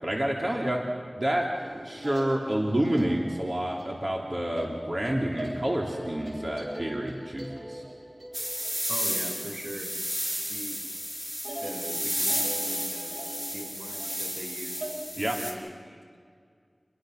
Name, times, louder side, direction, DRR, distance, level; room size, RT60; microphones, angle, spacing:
voice 1, 0.0-0.8 1.1-7.8 15.2-15.4, right 1 dB, 45° right, -1 dB, 2.9 m, -29 dB
sound 1, 1.5-10.3 10.6-11.0 11.4-15.1, right 1 dB, 60° right, 6.0 m, -41 dB
sound 2, 8.3-15.5, equal, 10° right, 5.5 m, -32 dB
voice 2, 8.9-9.9 10.5-10.8 11.6-13.1 13.5-16.2, right 1 dB, 80° right, 1 dB, 4.7 m, -41 dB
29.0 x 22.0 x 6.5 m, 2.1 s
wide cardioid pair, 60°, 0 cm